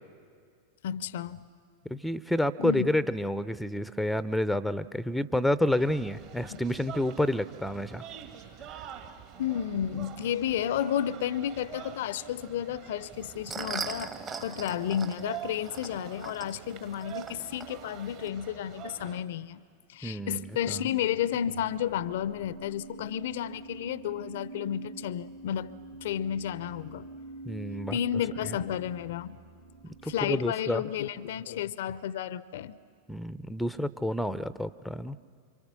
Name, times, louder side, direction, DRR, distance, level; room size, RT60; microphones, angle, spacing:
voice 1, 0.8-1.5 2.6-2.9 6.4-6.6 9.4-14.1 14.4-19.6 19.9-25.7 26.0-27.1 27.9-29.4 30.0-32.8, left 10 dB, 55° left, 0.6 m, -32 dB
voice 2, 1.8-8.0 8.7-8.8 20.0-20.8 27.4-28.0 28.5-28.6 29.8-30.8 33.1-35.2, left 1 dB, ahead, 0.6 m, -29 dB
sound 1, 5.8-19.2, right 9 dB, 45° right, 1.9 m, -46 dB
sound 2, 13.1-18.3, right 5 dB, 20° right, 1.1 m, -41 dB
sound 3, 20.1-30.2, right 2 dB, 65° right, 2.6 m, -46 dB
27.0 x 25.0 x 6.7 m
figure-of-eight pair, 90°, 0 cm